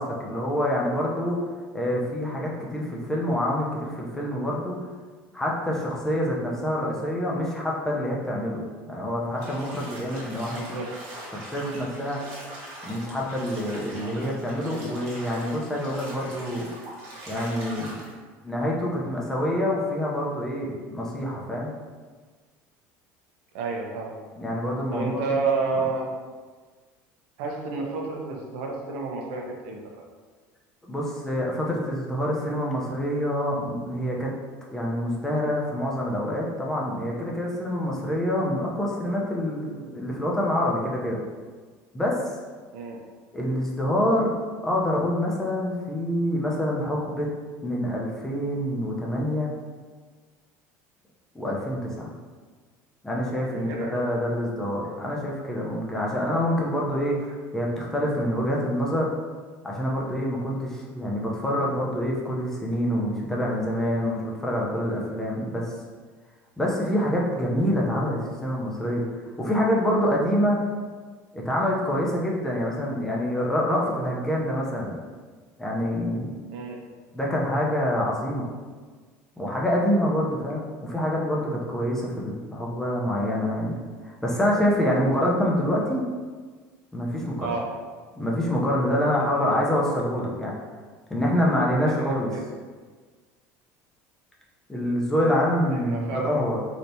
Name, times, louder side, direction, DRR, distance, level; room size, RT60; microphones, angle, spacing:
voice 1, 0.0-1.4 1.7-4.8 5.3-8.6 8.9-10.8 11.3-12.2 12.8-16.7 17.3-18.0 18.4-21.7 24.4-25.2 25.7-25.8 30.9-34.3 34.7-41.2 41.9-42.2 43.3-44.3 44.6-47.3 47.6-49.5 51.3-52.1 53.0-59.1 59.6-65.7 66.6-69.0 69.4-70.6 71.3-75.0 75.6-76.3 77.1-78.5 79.4-83.7 84.0-86.1 86.9-87.5 88.2-90.5 91.1-92.3 94.7-96.6, equal, 5° left, -3 dB, 0.6 m, -26 dB
Bathtub (filling or washing), 9.3-18.1, right 1 dB, 60° right, 1.1 m, -41 dB
voice 2, 10.5-10.9 23.5-24.2 24.9-26.1 27.4-29.8 42.7-43.0 53.5-54.0 76.5-76.9 87.4-87.7 89.2-89.3 89.5-89.6 92.0-92.4 95.7-96.4, right 4 dB, 85° right, 0 dB, 0.7 m, -30 dB
3.3 x 2.8 x 2.7 m, 1.5 s
cardioid pair, 150°, 7 cm